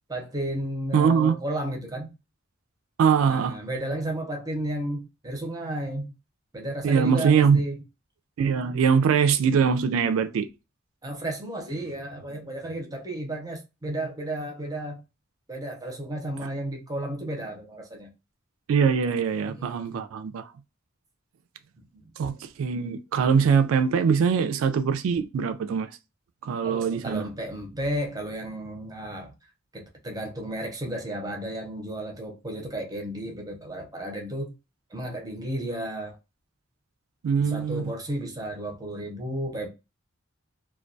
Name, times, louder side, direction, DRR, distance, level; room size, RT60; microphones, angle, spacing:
voice 1, 0.1-2.1 3.3-6.1 6.5-7.8 11.0-15.0 15.5-18.1 19.4-20.0 21.9-22.0 26.6-29.3 29.7-34.5 34.9-36.2 37.4-39.7, right 1 dB, 20° right, 0.6 m, -33 dB
voice 2, 0.9-1.4 3.0-3.6 6.8-7.6 8.4-10.5 18.7-20.4 22.2-25.9 26.4-27.3 37.2-37.9, right 6 dB, 85° right, 0.3 m, -22 dB
2.2 x 2.2 x 2.5 m
head